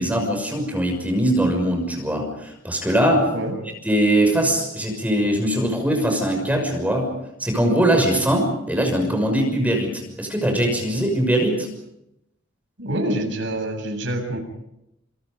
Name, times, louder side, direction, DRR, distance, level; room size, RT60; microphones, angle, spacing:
voice 1, 0.0-3.3 3.8-7.1 7.4-11.7, right 1 dB, 10° right, 3 dB, 6.1 m, -21 dB
voice 2, 12.8-14.4, right 1 dB, 70° right, 4 dB, 7.6 m, -26 dB
28.5 x 27.5 x 5.3 m, 0.83 s
head